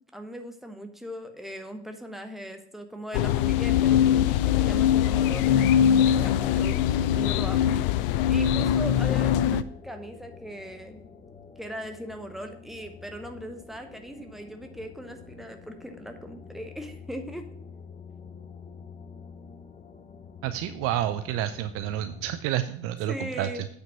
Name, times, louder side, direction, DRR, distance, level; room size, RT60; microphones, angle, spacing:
voice 1, 0.0-6.8 7.1-7.8 8.3-11.0 11.6-17.5 23.1-23.7, equal, ahead, 5 dB, 1.3 m, -39 dB
sound 1, 3.1-9.6, left 10 dB, 55° left, 0.5 m, -22 dB
sound 2, 4.8-22.4, left 5 dB, 20° left, 1.0 m, -48 dB
voice 2, 20.4-23.5, right 12 dB, 45° right, 12 dB, 0.6 m, -29 dB
8.8 x 5.3 x 5.9 m, 0.64 s
figure-of-eight pair, 75°, 33 cm